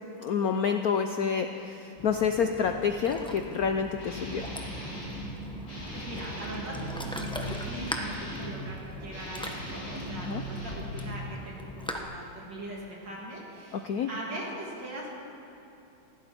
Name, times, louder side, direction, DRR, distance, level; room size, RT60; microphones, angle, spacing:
voice 1, 0.2-4.5 10.2-10.4 13.7-14.1, left 6 dB, 90° left, 6 dB, 0.8 m, -28 dB
Ocean, 2.0-12.0, equal, 5° left, 0.3 m, -40 dB
Guitar, 4.0-5.3 5.7-8.6 9.1-11.2, equal, 65° left, 4.8 m, -39 dB
voice 2, 5.9-15.1, right 1 dB, 55° right, -3 dB, 3.4 m, -41 dB
19.0 x 16.0 x 4.4 m, 3.0 s
omnidirectional pair, 2.4 m